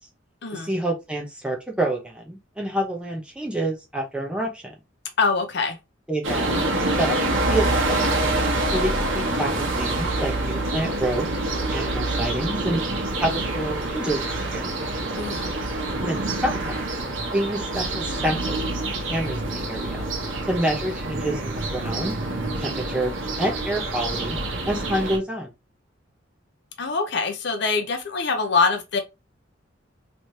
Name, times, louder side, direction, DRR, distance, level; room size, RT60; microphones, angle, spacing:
voice 1, 0.5-4.7 6.1-6.7 7.0-7.2 7.5-8.1 8.7-11.3 11.7-12.8 13.2-14.7 16.0-16.9 17.3-20.0 20.4-22.2 22.6-24.4 24.6-25.5, right 1 dB, 5° right, 0.8 m, -28 dB
voice 2, 5.2-5.8 15.1-15.5 26.8-29.0, left 4 dB, 60° left, 0.6 m, -24 dB
sound 1, 6.2-25.2, right 2 dB, 75° right, 1.1 m, -26 dB
3.2 x 3.1 x 2.7 m
head